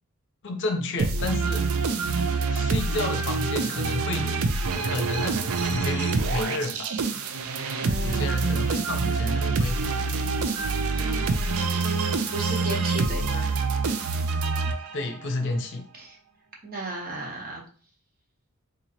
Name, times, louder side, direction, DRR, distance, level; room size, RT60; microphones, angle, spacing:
voice 1, 0.4-1.7 2.5-4.4 4.8-6.9 8.0-9.8 14.9-15.9, left 2 dB, 55° left, 4 dB, 0.7 m, -31 dB
sound 1, 1.0-15.2, right 4 dB, 70° right, 0.4 m, -26 dB
voice 2, 7.8-8.5 10.9-12.0 12.3-13.6 15.9-16.2 16.6-17.6, right 1 dB, 40° right, -1 dB, 0.9 m, -35 dB
3.8 x 2.9 x 2.8 m, 0.42 s
head